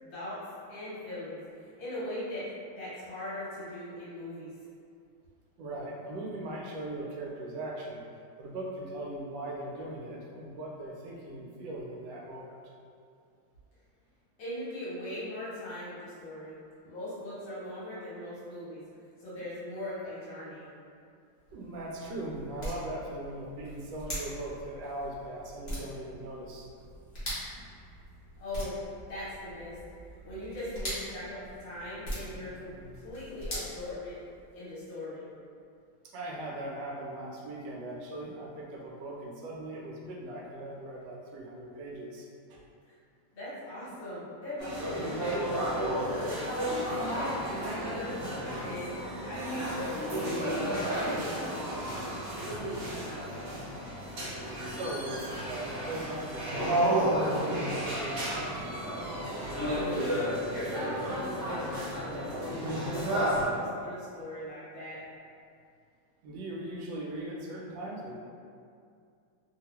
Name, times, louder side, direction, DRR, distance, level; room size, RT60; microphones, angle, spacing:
voice 1, 0.0-0.4 0.7-4.5 14.4-16.6 16.8-18.8 19.2-20.7 28.4-28.8 29.1-29.8 30.2-34.1 34.5-35.2 42.8-42.9 43.3-46.4 46.8-51.7 52.4-53.2 59.5-60.1 60.5-65.0, left 1 dB, 70° left, -10 dB, 1.5 m, -40 dB
voice 2, 5.6-8.0 8.4-12.7 19.3-19.4 21.5-26.7 36.0-42.6 54.7-58.3 66.2-68.2, right 1 dB, 70° right, -3 dB, 1.1 m, -39 dB
sound 1, 21.4-34.6, equal, 45° left, 1.1 m, -42 dB
sound 2, 44.6-63.4, right 1 dB, 50° right, 1.3 m, -32 dB
3.2 x 2.2 x 2.9 m, 2.4 s
omnidirectional pair, 2.2 m